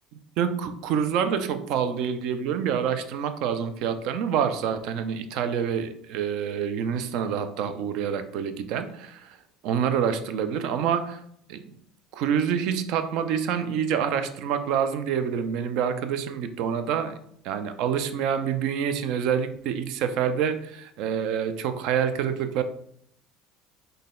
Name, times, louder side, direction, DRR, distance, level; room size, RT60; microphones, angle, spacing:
voice 1, 0.4-9.4 9.6-11.2 11.5-11.6 12.1-17.2 17.4-22.6, right 8 dB, 70° right, 0.4 m, -27 dB
3.9 x 2.2 x 3.6 m
supercardioid pair, 90°, 0 cm